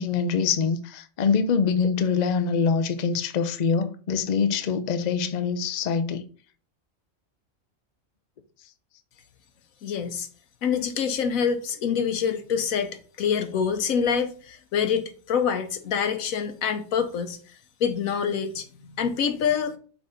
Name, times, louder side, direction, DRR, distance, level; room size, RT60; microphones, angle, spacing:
voice 1, 0.0-6.3, left 5 dB, 60° left, 0.4 m, -24 dB
voice 2, 9.8-10.3 10.6-17.4 17.8-19.8, left 7 dB, 85° left, 1.3 m, -26 dB
5.8 x 3.8 x 4.3 m
omnidirectional pair, 1.4 m